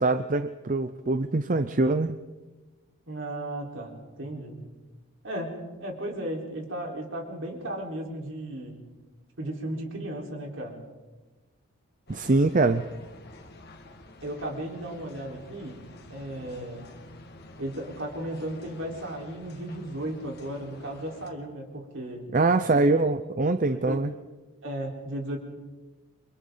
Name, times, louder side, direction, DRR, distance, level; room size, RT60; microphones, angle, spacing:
voice 1, 0.0-2.2 12.1-12.8 22.3-24.1, right 2 dB, 40° right, 10 dB, 0.6 m, -23 dB
voice 2, 3.1-4.6 5.2-8.8 9.4-10.8 14.2-15.8 16.1-16.9 17.6-22.2 22.7-22.8 23.7-24.0 24.6-25.4, right 1 dB, 60° right, 0 dB, 4.3 m, -35 dB
sound 1, 12.1-21.3, left 2 dB, 50° left, 1.8 m, -49 dB
29.0 x 25.5 x 4.0 m, 1.2 s
head